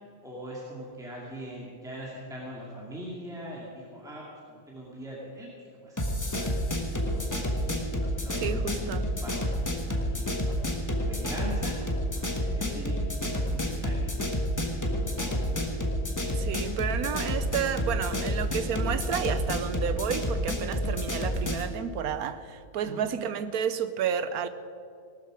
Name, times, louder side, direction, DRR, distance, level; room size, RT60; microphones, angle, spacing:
voice 1, 0.2-7.2 7.9-8.9 9.2-14.2 14.7-14.8 15.2-15.7 22.8-23.1, equal, ahead, -5 dB, 2.4 m, -42 dB
sound 1, 6.0-21.7, equal, 15° left, 1.3 m, -29 dB
voice 2, 8.4-9.1 16.3-24.5, right 8 dB, 85° right, 12 dB, 1.3 m, -31 dB
17.5 x 13.0 x 5.0 m, 2.3 s
omnidirectional pair, 1.5 m